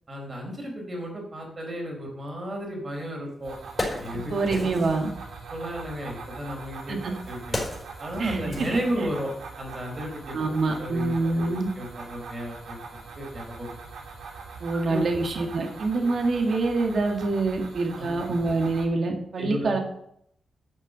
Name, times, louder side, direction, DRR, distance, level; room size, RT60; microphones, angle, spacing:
voice 1, 0.1-3.5 4.0-4.7 5.5-7.6 8.0-9.3 9.6-10.4 10.8-12.8 13.2-13.7 14.7-15.1 15.9-16.1 18.0-18.4 19.4-19.7, equal, 35° right, 0 dB, 4.2 m, -34 dB
Wood, 2.9-3.0 3.5-5.1 6.1-9.4 9.7-9.9, left 2 dB, 20° left, 4.5 m, -35 dB
sound 1, 3.4-18.8, right 4 dB, 85° right, 2.6 m, -42 dB
voice 2, 4.3-5.1 6.9-7.1 8.2-9.1 10.3-11.7 14.6-19.8, right 3 dB, 60° right, 3 dB, 2.0 m, -26 dB
11.5 x 6.8 x 6.6 m, 0.72 s
wide cardioid pair, 135°, 0 cm